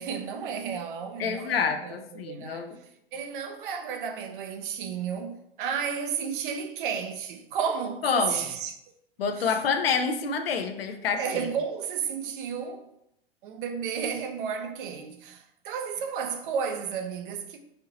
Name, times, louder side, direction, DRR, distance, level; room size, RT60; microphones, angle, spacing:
voice 1, 0.0-2.7 3.1-8.7 9.4-9.6 11.1-12.9 13.4-17.6, right 7 dB, 55° right, 0.6 m, -32 dB
voice 2, 1.2-2.8 8.0-8.4 9.2-11.2, left 6 dB, 70° left, 0.5 m, -27 dB
4.3 x 2.7 x 2.8 m
figure-of-eight pair, 90°, 31 cm